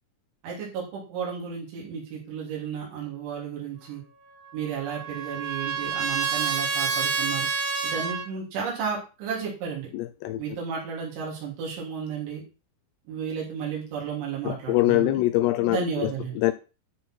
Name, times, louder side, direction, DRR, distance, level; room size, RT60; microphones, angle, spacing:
voice 1, 0.4-4.0 4.5-7.5 7.8-9.9 10.4-12.4 13.1-15.2 15.6-16.3, right 6 dB, 90° right, 5.6 m, -33 dB
Trumpet, 4.4-8.3, right 5 dB, 70° right, 1.5 m, -28 dB
voice 2, 9.9-10.4 14.5-16.5, left 16 dB, 80° left, 2.5 m, -24 dB
13.0 x 4.5 x 4.5 m
omnidirectional pair, 5.2 m